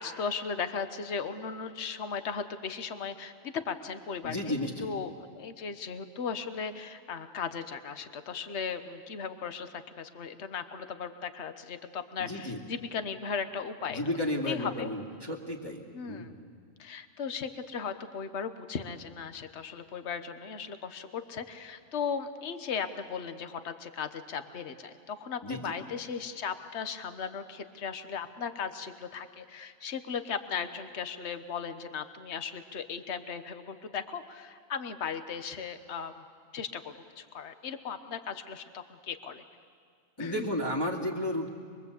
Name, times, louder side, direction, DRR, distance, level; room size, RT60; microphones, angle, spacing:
voice 1, 0.0-14.0 14.5-14.9 15.9-16.4 16.8-36.1 36.5-39.4 40.2-40.5, left 6 dB, 60° left, 10 dB, 1.3 m, -37 dB
voice 2, 4.2-4.9 12.2-12.6 13.9-16.4 25.4-25.8 40.2-41.5, left 1 dB, 20° left, -1 dB, 2.5 m, -33 dB
24.0 x 23.0 x 8.2 m, 2.1 s
omnidirectional pair, 1.4 m